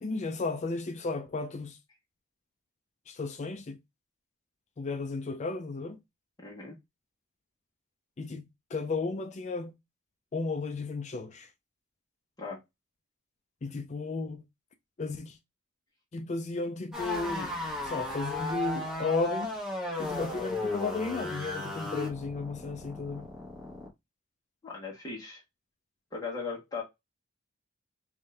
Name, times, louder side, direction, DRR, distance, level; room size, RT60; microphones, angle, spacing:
voice 1, 0.0-1.8 3.1-3.8 4.8-6.0 8.2-9.7 10.3-11.5 13.6-14.4 15.0-15.4 16.1-17.5 17.8-19.5 20.0-23.3, left 3 dB, 35° left, 0.4 m, -34 dB
voice 2, 6.4-6.8 12.4-12.6 24.6-25.4 26.1-26.8, left 4 dB, 20° left, 1.2 m, -38 dB
sound 1, 16.9-23.9, left 2 dB, 5° right, 1.3 m, -35 dB
3.5 x 2.6 x 3.3 m
head